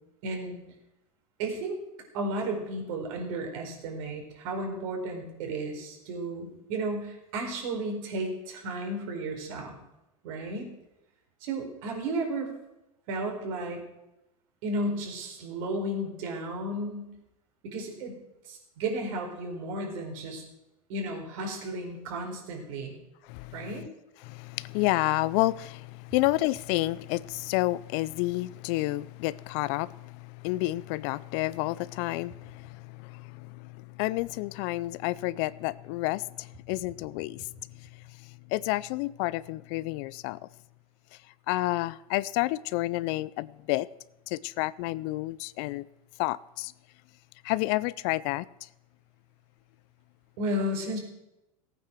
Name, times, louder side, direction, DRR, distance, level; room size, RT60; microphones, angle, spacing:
voice 1, 0.2-0.5 1.4-1.8 2.1-9.8 10.2-10.7 11.4-12.5 13.1-13.8 14.6-17.1 17.6-18.1 18.4-20.4 20.9-22.9 23.5-23.9 50.4-51.0, right 1 dB, 60° right, 4.6 m, -33 dB
voice 2, 23.2-23.9 24.2-37.5 37.8-37.9 38.2-40.4 41.5-43.9 44.3-45.9 46.2-46.7 47.4-48.7, left 19 dB, 50° left, 0.5 m, -30 dB
16.0 x 9.1 x 6.2 m
hypercardioid pair, 95°, 19 cm